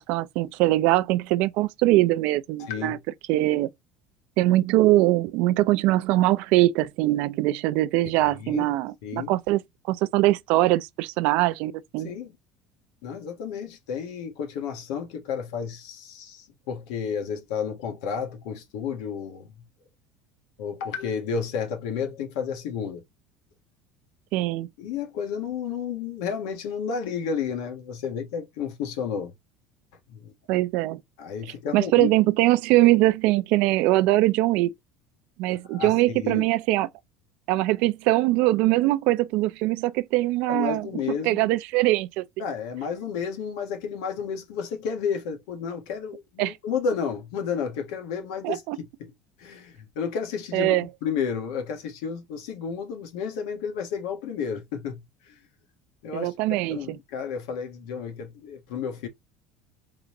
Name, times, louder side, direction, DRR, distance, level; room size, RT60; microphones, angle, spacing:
voice 1, 0.0-3.0 3.3-3.7 4.4-9.6 9.9-12.1 24.3-24.7 30.5-31.0 31.7-34.7 35.4-36.9 37.5-40.9 41.2-42.2 46.4-46.5 48.4-48.8 50.5-50.8 56.1-56.8, right 17 dB, 60° right, 0.4 m, -22 dB
voice 2, 2.6-3.0 8.2-8.7 9.0-9.3 12.0-12.3 13.0-19.5 20.6-23.0 24.8-29.3 30.1-30.3 31.2-32.1 35.7-36.5 40.5-41.5 42.4-48.6 49.4-55.4 56.0-59.1, left 6 dB, 90° left, 1.4 m, -31 dB
3.9 x 3.4 x 2.9 m
cardioid pair, 165°, 2 cm